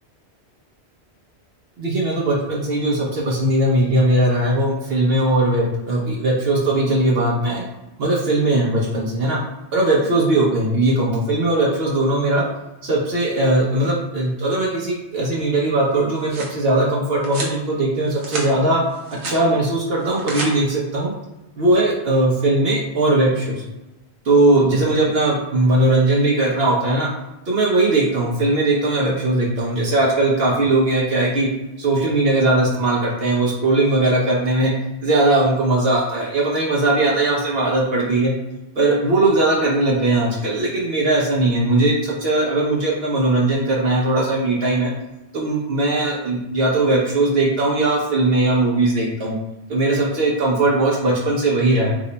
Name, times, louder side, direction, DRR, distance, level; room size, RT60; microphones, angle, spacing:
voice 1, 1.8-7.6 8.0-9.4 9.7-12.4 12.8-18.8 19.1-21.1 21.6-23.6 24.3-27.1 27.5-31.5 31.8-34.7 35.0-38.3 38.8-44.9 45.3-49.4 49.7-52.0, right 2 dB, 65° right, -3 dB, 0.9 m, -19 dB
sound 1, 15.9-16.6 17.2-17.6 18.0-18.5 18.9-19.4 20.0-20.5, right 2 dB, 90° right, 1.0 m, -30 dB
2.9 x 2.1 x 3.9 m, 0.97 s
omnidirectional pair, 1.1 m